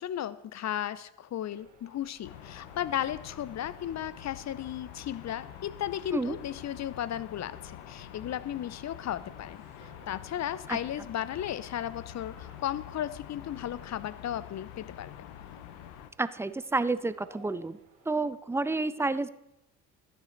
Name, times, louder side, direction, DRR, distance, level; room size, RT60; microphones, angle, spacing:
voice 1, 0.0-15.1, left 11 dB, 40° left, 16 dB, 0.7 m, -35 dB
sound 1, 1.5-18.3, right 3 dB, 85° right, 3.0 m, -60 dB
sound 2, 2.2-16.1, left 10 dB, 75° left, 0.9 m, -46 dB
voice 2, 16.2-17.8 18.1-19.3, right 3 dB, 5° right, 15 dB, 0.4 m, -30 dB
11.5 x 9.4 x 4.0 m, 0.90 s
hypercardioid pair, 55°, 42 cm